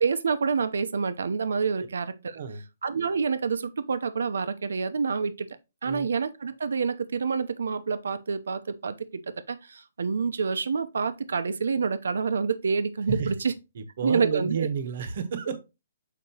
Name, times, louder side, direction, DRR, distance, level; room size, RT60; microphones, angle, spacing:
voice 1, 0.0-2.4 2.8-5.5 5.8-9.2 9.5-13.5 14.0-14.7, right 5 dB, 80° right, 0.7 m, -27 dB
voice 2, 2.3-2.6 5.8-6.1 13.1-13.3 13.7-15.6, right 6 dB, 45° right, 1.0 m, -31 dB
6.7 x 5.0 x 2.9 m
hypercardioid pair, 170°, 0 cm